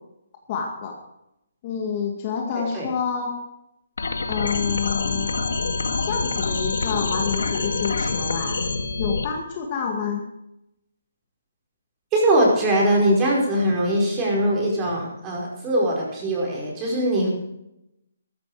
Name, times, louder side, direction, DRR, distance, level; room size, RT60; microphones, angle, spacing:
voice 1, 0.5-0.9 1.6-3.4 4.3-5.5 6.0-8.6 9.0-10.2, left 6 dB, 30° left, 2 dB, 2.0 m, -28 dB
sound 1, 4.0-9.3, left 4 dB, 85° left, 1.8 m, -26 dB
voice 2, 12.1-17.3, right 1 dB, 20° right, -2 dB, 4.9 m, -21 dB
14.0 x 13.5 x 4.9 m, 0.84 s
hypercardioid pair, 165°, 0 cm